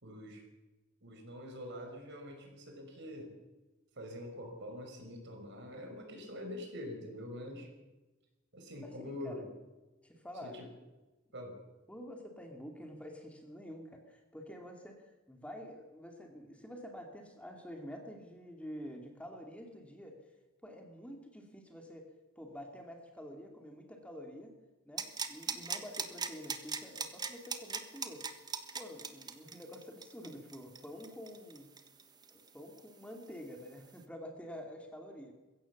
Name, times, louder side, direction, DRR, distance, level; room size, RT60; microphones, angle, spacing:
voice 1, 0.0-0.5 1.0-3.4 4.0-7.7 8.5-9.4 10.4-10.7 11.3-11.6, left 1 dB, 60° right, 4 dB, 5.5 m, -45 dB
voice 2, 8.8-9.5 10.0-10.6 11.9-20.2 20.6-22.1 22.4-24.6 24.8-28.2 28.7-31.7 32.3-35.3, equal, 5° left, 2 dB, 2.5 m, -48 dB
sound 1, 25.0-32.5 32.8-32.9, right 5 dB, 20° right, 1.5 m, -39 dB
22.0 x 16.5 x 7.2 m, 1.1 s
head